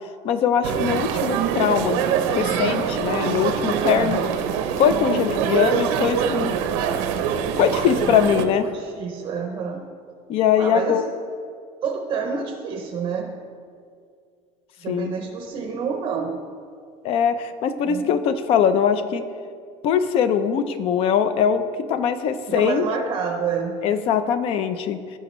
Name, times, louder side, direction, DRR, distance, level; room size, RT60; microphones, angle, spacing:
voice 1, 0.2-4.2 4.8-6.5 7.6-8.7 10.3-11.0 14.9-15.1 17.0-19.2 19.8-21.6 21.9-22.8 23.8-25.0, left 8 dB, 40° left, 11 dB, 0.5 m, -21 dB
sound 1, 0.6-8.5, right 8 dB, 85° right, 0.7 m, -24 dB
voice 2, 3.8-4.2 4.9-5.3 7.7-8.1 8.6-9.8 10.6-11.0 11.8-13.3 14.8-16.4 17.8-18.1 22.5-23.8, right 6 dB, 30° right, 4 dB, 0.6 m, -28 dB
16.5 x 5.9 x 3.1 m, 2.2 s
cardioid pair, 175°, 14 cm